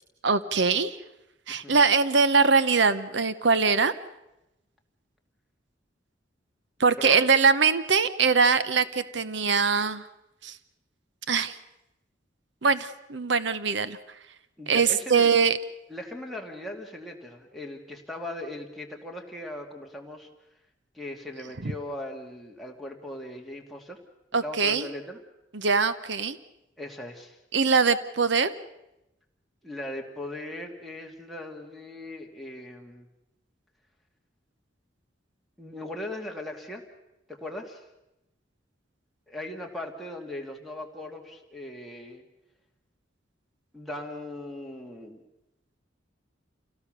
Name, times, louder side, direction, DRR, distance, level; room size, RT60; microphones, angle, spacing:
voice 1, 0.2-1.0 1.5-3.9 6.8-10.0 10.4-10.6 11.3-11.6 12.6-14.0 14.7-15.6 21.6-21.7 24.3-24.9 25.5-26.4 27.5-28.5, right 5 dB, 70° right, 14 dB, 0.9 m, -22 dB
voice 2, 14.6-15.3 15.9-20.3 20.9-24.0 24.4-25.2 26.8-27.4 29.6-33.1 35.6-36.8 37.3-37.8 39.3-42.2 43.7-45.2, left 1 dB, ahead, -1 dB, 2.4 m, -39 dB
27.5 x 17.5 x 6.8 m, 0.92 s
head